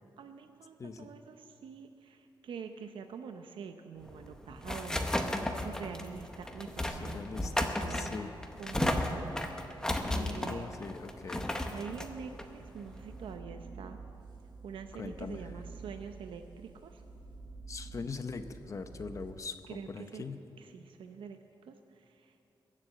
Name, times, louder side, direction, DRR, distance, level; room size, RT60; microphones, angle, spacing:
voice 1, 0.2-8.1 8.6-9.3 9.7-9.8 10.1-10.7 11.7-14.0 14.6-17.0 19.7-20.2 20.6-22.6, right 6 dB, 90° right, 6 dB, 0.7 m, -46 dB
sound 1, 4.0-13.3, left 1 dB, 5° left, 0.9 m, -34 dB
voice 2, 6.9-8.3 10.0-11.5 15.0-15.4 17.7-19.5 19.9-20.4, left 4 dB, 40° left, 9 dB, 0.7 m, -41 dB
sound 2, 11.9-19.3, right 4 dB, 60° right, 1.7 m, -49 dB
22.0 x 7.5 x 7.7 m, 2.8 s
wide cardioid pair, 170°, 8 cm